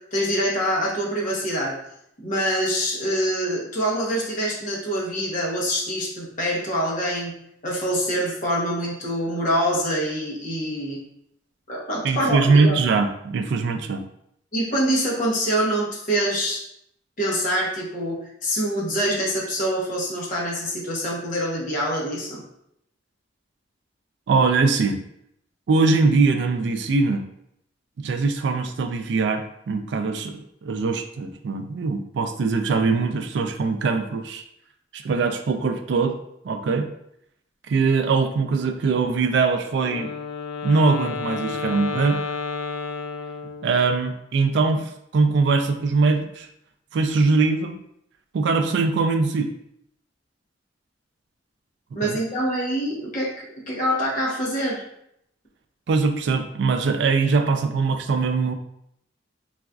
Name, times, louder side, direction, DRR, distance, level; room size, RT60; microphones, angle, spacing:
voice 1, 0.1-1.8 2.2-7.3 7.6-11.0 11.7-12.8 14.5-16.6 17.2-22.4 51.9-54.8, equal, 45° left, -4 dB, 0.9 m, -25 dB
voice 2, 12.0-14.0 24.3-25.0 25.7-27.2 28.0-34.4 34.9-36.1 36.4-36.9 37.7-40.1 40.6-42.2 43.6-46.5 46.9-47.8 48.3-49.5 52.0-52.2 55.9-58.5, right 4 dB, 65° right, 7 dB, 0.3 m, -22 dB
Wind instrument woodwind instrument, 39.8-43.9, left 4 dB, 70° left, 0.4 m, -31 dB
3.9 x 2.4 x 2.3 m, 0.75 s
head